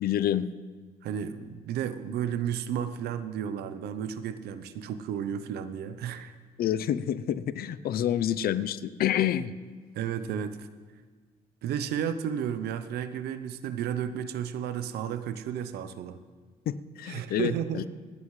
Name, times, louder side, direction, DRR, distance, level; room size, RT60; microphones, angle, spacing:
voice 1, 0.0-0.5 6.6-9.5 16.7-17.5, left 10 dB, 70° left, 15 dB, 0.6 m, -28 dB
voice 2, 1.0-6.3 9.9-10.7 11.6-16.2 17.0-17.9, right 9 dB, 80° right, 12 dB, 0.7 m, -32 dB
27.5 x 9.5 x 3.2 m, 1.5 s
supercardioid pair, 70°, 16 cm